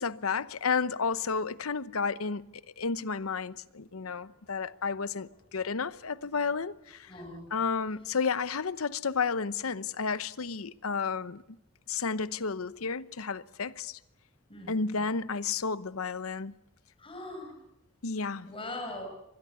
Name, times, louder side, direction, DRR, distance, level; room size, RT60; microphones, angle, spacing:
voice 1, 0.0-2.5 2.8-7.1 7.5-11.4 11.9-14.0 14.7-16.5 18.0-18.5, left 5 dB, 85° left, 0.9 m, -32 dB
voice 2, 4.0-4.7 7.1-7.5 14.5-15.1 17.0-17.5 18.5-19.0, left 2 dB, 25° left, 6.0 m, -42 dB
24.5 x 20.5 x 8.4 m
head